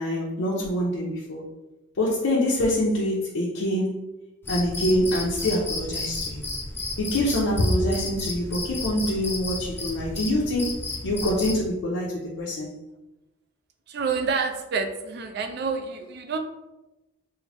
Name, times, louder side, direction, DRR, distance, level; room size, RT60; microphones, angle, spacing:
voice 1, 0.0-1.4 2.0-4.0 4.5-6.5 7.0-12.8, left 1 dB, 75° left, -5 dB, 0.6 m, -25 dB
Cricket, 4.4-11.6, left 2 dB, 10° left, 0.4 m, -33 dB
voice 2, 13.9-16.4, right 5 dB, 55° right, 5 dB, 0.4 m, -28 dB
3.7 x 2.1 x 3.3 m, 1.0 s
head